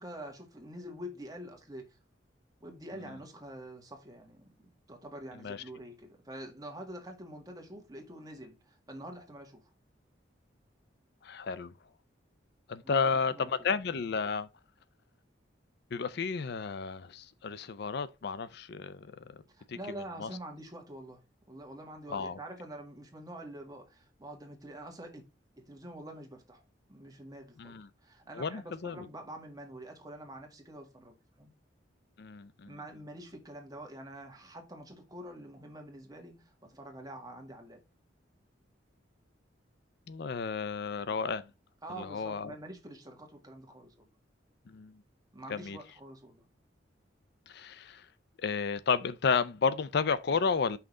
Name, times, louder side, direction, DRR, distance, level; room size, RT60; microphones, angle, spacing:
voice 1, 0.0-1.9 2.6-9.6 12.8-13.5 19.5-21.2 21.5-25.2 25.6-26.6 26.9-31.5 32.6-37.8 41.8-44.1 45.3-46.4, right 1 dB, 20° right, 1.7 m, -46 dB
voice 2, 11.2-11.7 12.7-14.5 15.9-19.1 19.7-19.8 20.2-20.3 22.1-22.4 27.6-27.9 28.3-29.0 32.2-32.8 40.1-41.5 42.0-42.5 44.7-45.0 45.5-45.8 47.5-48.1 48.4-50.8, left 5 dB, 60° left, 0.5 m, -32 dB
5.7 x 3.8 x 4.8 m
head